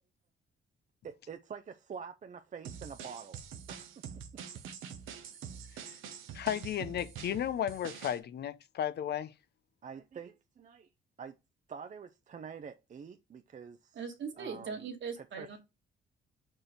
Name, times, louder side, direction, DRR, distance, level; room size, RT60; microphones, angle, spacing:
voice 1, 1.0-3.9 9.8-10.9 11.2-11.4 11.7-14.0 14.4-14.9 15.2-15.6, right 6 dB, 40° right, 0.6 m, -46 dB
sound 1, 2.6-8.2, right 8 dB, 90° right, 0.9 m, -45 dB
voice 2, 6.3-9.3, left 10 dB, 55° left, 0.5 m, -34 dB
voice 3, 14.0-15.6, right 6 dB, 70° right, 1.9 m, -40 dB
5.0 x 4.5 x 4.3 m
cardioid pair, 90°, 20 cm